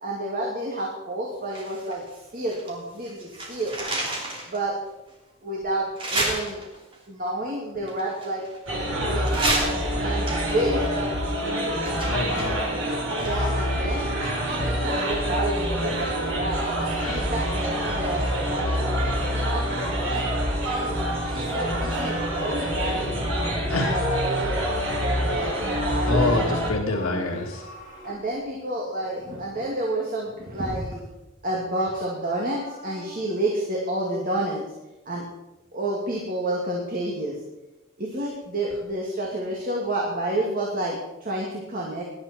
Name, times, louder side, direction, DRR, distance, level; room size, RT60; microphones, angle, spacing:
voice 1, 0.0-2.0 2.3-3.8 4.5-4.8 5.4-6.6 7.1-9.6 10.0-11.0 13.2-14.1 14.6-19.6 20.0-20.2 20.6-26.3 28.0-31.0 31.4-34.6 35.1-35.2 35.7-37.4 38.0-42.0, right 1 dB, 40° right, -2 dB, 2.3 m, -30 dB
sound 1, 1.5-2.8 3.0-4.6 5.1-5.2 6.0-7.0 7.9-8.8 9.2-13.7 13.9-14.0, right 1 dB, 25° right, 3.1 m, -31 dB
sound 2, 8.7-26.7, equal, 65° right, 4.3 m, -26 dB
voice 2, 12.1-12.6 17.0-17.2 23.7-23.9 26.1-27.6, left 2 dB, 85° left, 1 dB, 1.8 m, -26 dB
Livestock farm animals working animals, 23.1-26.6 26.8-28.2 31.9-33.1, left 3 dB, 40° left, 3.4 m, -39 dB
18.0 x 11.5 x 4.4 m, 1.0 s
head